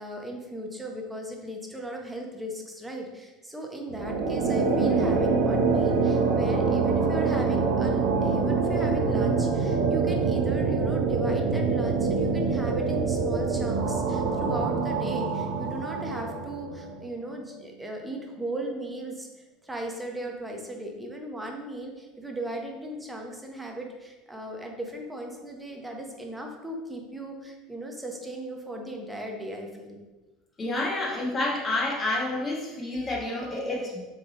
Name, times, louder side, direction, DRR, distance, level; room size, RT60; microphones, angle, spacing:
voice 1, 0.0-19.3 19.6-30.0, right 1 dB, 10° right, 1 dB, 0.8 m, -37 dB
sound 1, 3.9-17.0, right 4 dB, 75° right, 0.7 m, -25 dB
voice 2, 30.6-34.1, left 2 dB, 25° left, -2 dB, 1.3 m, -29 dB
3.5 x 3.4 x 3.8 m, 1.2 s
hypercardioid pair, 90°, 0 cm